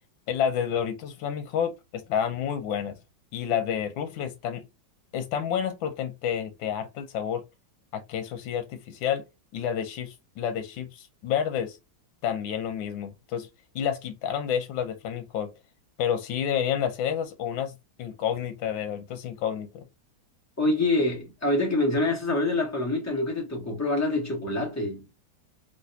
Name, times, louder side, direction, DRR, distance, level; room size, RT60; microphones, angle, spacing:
voice 1, 0.3-3.0 3.3-4.6 5.1-7.4 7.9-9.2 9.5-11.8 12.2-13.5 13.7-15.5 16.0-17.7 18.0-19.9, left 8 dB, 90° left, 1.5 m, -29 dB
voice 2, 20.6-25.0, left 2 dB, 10° left, 1.0 m, -26 dB
3.2 x 2.9 x 2.7 m
omnidirectional pair, 2.1 m